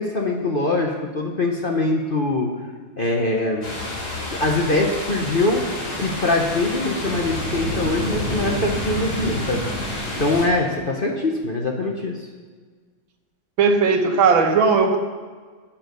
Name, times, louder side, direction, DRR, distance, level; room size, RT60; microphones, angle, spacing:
voice 1, 0.0-2.5 3.0-3.7 4.3-5.6 5.9-12.1, left 2 dB, 35° left, 0 dB, 0.9 m, -23 dB
sound 1, 3.6-10.4, left 1 dB, 55° left, 3.2 m, -28 dB
voice 2, 13.6-15.0, right 5 dB, 90° right, 5 dB, 1.9 m, -17 dB
11.5 x 8.7 x 5.3 m, 1.5 s
omnidirectional pair, 2.1 m